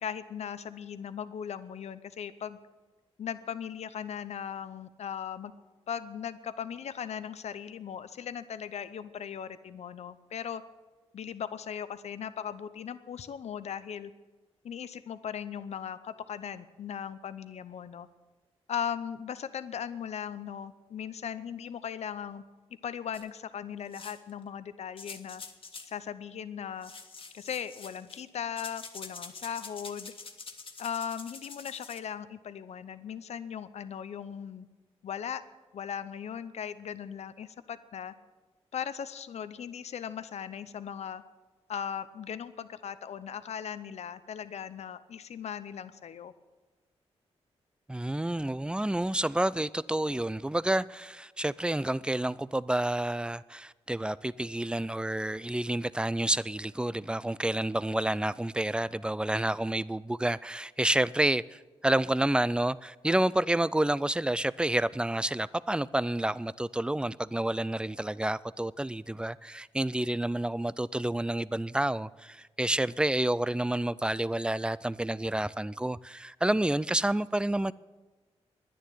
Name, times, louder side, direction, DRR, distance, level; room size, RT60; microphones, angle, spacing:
voice 1, 0.0-2.6 3.2-5.5 5.9-10.6 11.1-14.1 14.6-18.1 18.7-22.4 22.8-25.4 25.9-26.9 27.3-30.1 30.8-34.7 35.0-35.4 35.7-38.1 38.7-41.2 41.7-46.3, left 8 dB, 75° left, 0.7 m, -38 dB
sound 1, 23.1-23.2 23.9-24.3 25.0-25.9 26.8-28.3 28.6-32.0, left 4 dB, 55° left, 1.6 m, -46 dB
voice 2, 47.9-77.7, right 1 dB, 10° right, 0.4 m, -29 dB
10.5 x 10.0 x 9.2 m
cardioid pair, 70°, 11 cm